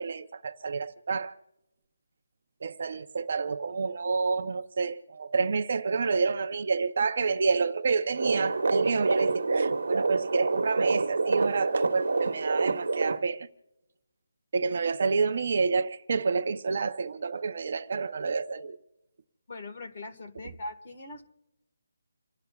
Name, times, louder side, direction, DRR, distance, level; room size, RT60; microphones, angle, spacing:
voice 1, 0.0-1.3 2.6-13.5 14.5-18.8, right 4 dB, 35° right, 0.7 m, -29 dB
sound 1, 8.1-13.2, right 3 dB, 75° right, 1.2 m, -27 dB
voice 2, 19.5-21.2, left 2 dB, 30° left, 1.5 m, -41 dB
28.5 x 17.5 x 2.4 m
hypercardioid pair, 180°, 0 cm